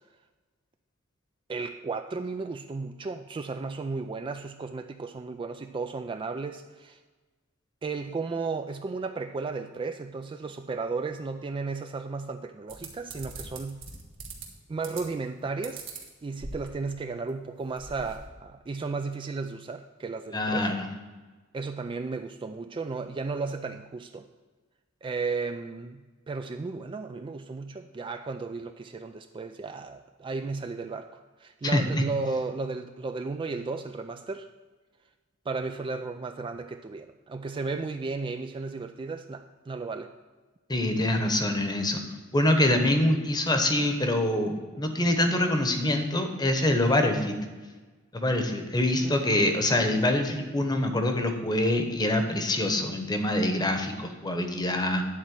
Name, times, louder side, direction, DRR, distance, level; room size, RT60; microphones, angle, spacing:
voice 1, 1.5-7.0 7.8-13.8 14.7-15.8 16.2-20.7 21.5-24.3 25.0-26.0 26.3-31.1 31.4-34.5 35.5-40.1 49.0-49.2, right 4 dB, 25° right, 7 dB, 0.3 m, -34 dB
sound 1, 12.7-14.5 14.8-15.3 15.6-16.9 17.3-17.4 17.6-18.3, right 4 dB, 65° right, 1.6 m, -41 dB
voice 2, 20.3-20.9 31.6-31.8 40.7-42.0 42.3-47.3 48.1-55.0, left 1 dB, 20° left, 5 dB, 1.0 m, -25 dB
9.9 x 4.3 x 7.6 m, 1.3 s
head